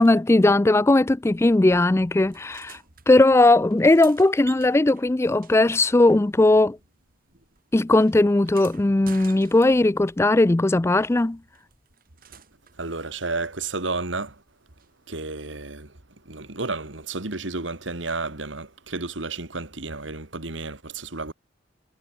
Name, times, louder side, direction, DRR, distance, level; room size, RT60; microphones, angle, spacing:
voice 1, 0.0-2.8 3.1-6.8 7.7-11.4, left 2 dB, 15° left, 0.4 m, -18 dB
sound 1, 2.3-3.1 3.7-6.6 6.9-10.1 11.5-12.8 14.8-14.9, right 7 dB, 50° right, 3.9 m, -49 dB
voice 2, 12.8-14.4 15.1-15.9 16.3-21.3, right 3 dB, 75° right, 2.6 m, -31 dB
head